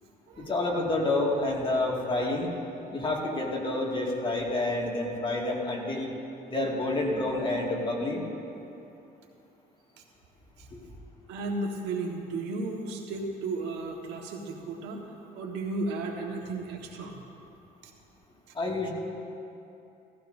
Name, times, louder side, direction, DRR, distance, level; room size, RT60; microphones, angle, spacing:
voice 1, 0.4-2.5 2.9-6.1 6.5-8.2 10.7-10.8 18.5-18.9, left 2 dB, 30° left, -2 dB, 2.1 m, -28 dB
voice 2, 11.3-15.0 15.3-17.2 17.8-17.9, right 3 dB, 90° right, 1 dB, 1.5 m, -34 dB
17.0 x 14.5 x 2.7 m, 2.7 s
cardioid pair, 110°, 17 cm